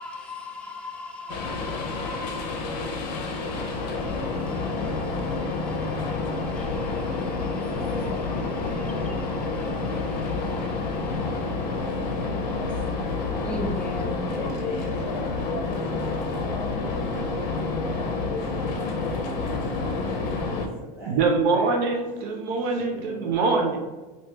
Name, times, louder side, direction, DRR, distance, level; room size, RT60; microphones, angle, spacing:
voice 1, 0.0-14.2, left 2 dB, 5° left, 0.3 m, -41 dB
sound 1, 1.3-20.7, left 3 dB, 80° left, 0.7 m, -28 dB
voice 2, 14.3-17.6 18.3-21.3 22.6-22.7 22.9-23.8, equal, 15° right, 1.1 m, -42 dB
voice 3, 21.1-23.8, right 4 dB, 50° right, 0.7 m, -24 dB
3.4 x 2.7 x 3.1 m
supercardioid pair, 145°, 21 cm